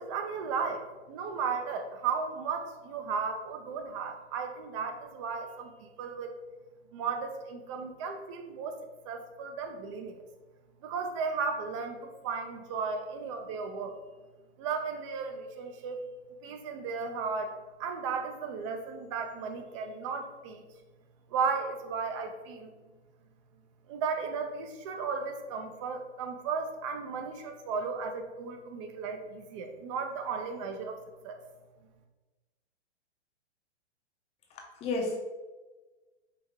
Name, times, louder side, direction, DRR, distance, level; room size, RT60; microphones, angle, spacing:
voice 1, 0.0-6.3 6.9-8.8 9.0-10.2 10.8-14.0 14.6-16.0 16.4-20.7 21.3-22.7 23.9-31.0 31.2-31.4, right 5 dB, 30° right, 6 dB, 0.4 m, -35 dB
voice 2, 34.5-35.2, left 2 dB, 20° left, 0 dB, 0.6 m, -32 dB
4.7 x 2.7 x 3.5 m, 1.2 s
hypercardioid pair, 140°, 34 cm